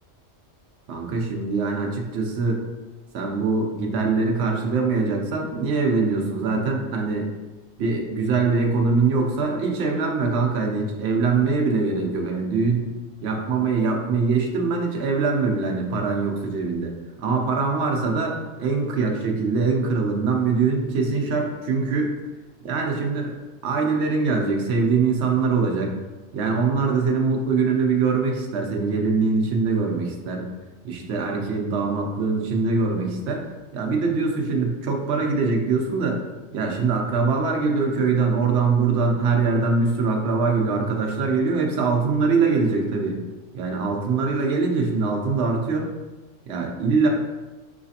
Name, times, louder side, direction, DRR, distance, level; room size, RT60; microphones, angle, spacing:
voice 1, 0.9-2.6 3.1-7.2 7.8-12.9 13.2-16.9 17.2-22.2 22.6-23.3 23.6-26.0 26.3-30.5 30.8-33.5 33.7-36.2 36.5-43.2 43.5-45.9 46.5-47.1, right 4 dB, 65° right, 1 dB, 0.9 m, -23 dB
4.8 x 3.2 x 2.7 m, 1.2 s
omnidirectional pair, 1.3 m